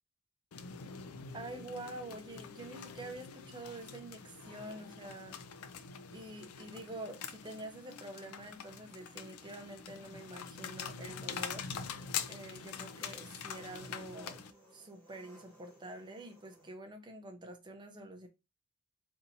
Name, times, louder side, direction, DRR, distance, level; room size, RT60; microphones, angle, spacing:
sound 1, 0.5-14.5, left 7 dB, 75° left, 0.4 m, -45 dB
voice 1, 1.3-5.4 6.1-11.7 12.3-14.4 14.7-18.3, right 1 dB, 20° right, 0.7 m, -47 dB
Engine, 11.5-16.7, equal, 10° left, 1.0 m, -62 dB
4.0 x 2.7 x 2.7 m
head